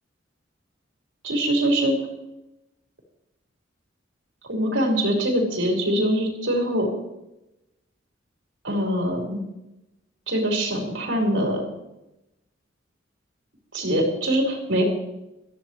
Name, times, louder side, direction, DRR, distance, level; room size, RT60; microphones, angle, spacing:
voice 1, 1.2-2.0 4.5-6.9 8.6-9.4 10.3-11.6 13.7-14.8, right 1 dB, 90° right, -1 dB, 5.1 m, -23 dB
21.0 x 15.0 x 3.2 m, 0.91 s
head